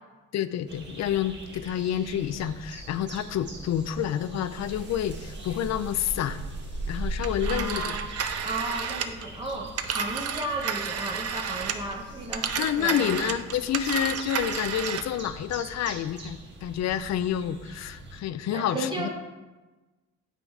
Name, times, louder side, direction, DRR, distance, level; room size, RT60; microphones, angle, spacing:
voice 1, 0.3-6.4 6.9-8.0 12.6-19.1, left 10 dB, 60° left, 13 dB, 0.5 m, -29 dB
sound 1, 0.7-18.2, right 1 dB, 35° right, 1.5 m, -40 dB
Telephone, 7.2-12.0 12.3-15.2, right 7 dB, 55° right, 0.7 m, -32 dB
voice 2, 7.4-8.1 8.4-13.2 18.5-19.1, right 1 dB, 15° right, -1 dB, 0.8 m, -34 dB
9.1 x 4.0 x 4.7 m, 1.2 s
cardioid pair, 90°, 30 cm